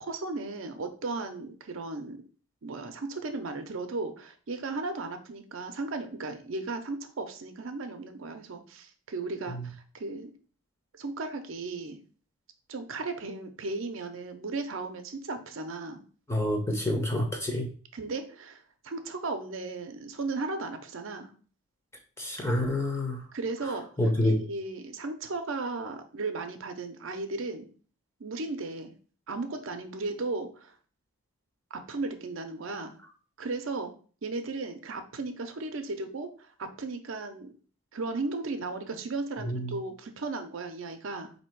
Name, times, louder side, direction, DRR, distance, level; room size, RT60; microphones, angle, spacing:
voice 1, 0.0-2.2 2.6-10.3 10.9-12.0 12.7-16.0 17.9-21.3 23.3-23.9 24.2-27.7 28.2-28.9 29.3-30.7 31.7-33.0 33.4-33.9 34.2-37.5 37.9-41.3, right 3 dB, 65° right, 6 dB, 0.5 m, -35 dB
voice 2, 16.3-17.7 22.2-23.2 23.6-24.4 39.4-39.8, left 1 dB, 10° left, 2 dB, 0.7 m, -28 dB
4.3 x 2.7 x 4.4 m, 0.41 s
head